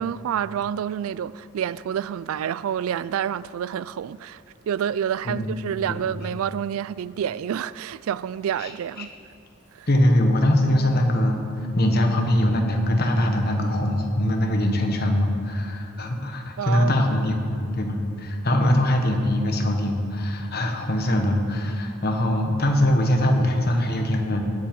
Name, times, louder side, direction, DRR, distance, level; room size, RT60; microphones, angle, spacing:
voice 1, 0.0-9.1 9.8-9.9 16.6-17.0, right 9 dB, 75° right, 0.3 m, -28 dB
voice 2, 5.2-5.6 5.9-6.0 8.6-8.7 9.0-9.1 9.9-11.4 11.7-24.4, left 1 dB, 45° left, 1.3 m, -22 dB
18.0 x 7.7 x 5.4 m
head